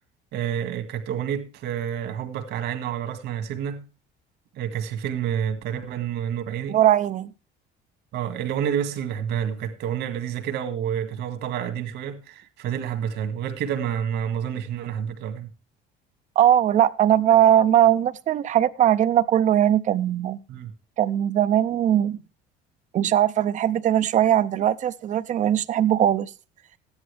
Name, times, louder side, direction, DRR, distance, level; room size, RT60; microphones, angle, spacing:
voice 1, 0.3-3.9 4.6-6.8 8.1-15.5 20.5-20.7, right 9 dB, 65° right, 1.9 m, -29 dB
voice 2, 6.7-7.3 16.4-20.4 21.0-22.2 22.9-26.3, right 11 dB, 40° right, 0.5 m, -20 dB
14.0 x 10.5 x 3.4 m
cardioid pair, 160°, 19 cm